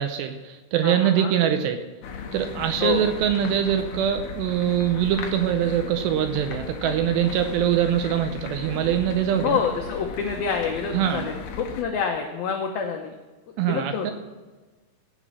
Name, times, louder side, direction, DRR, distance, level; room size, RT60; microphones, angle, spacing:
voice 1, 0.0-1.8 2.3-9.6 10.9-11.2 13.6-14.1, right 10 dB, 80° right, 7 dB, 2.6 m, -23 dB
voice 2, 0.8-1.3 2.8-3.1 9.4-13.2 13.6-14.1, left 6 dB, 85° left, 3 dB, 2.1 m, -27 dB
sound 1, 2.0-11.8, left 6 dB, 70° left, 2.7 m, -36 dB
17.0 x 6.1 x 6.1 m, 1.3 s
omnidirectional pair, 5.5 m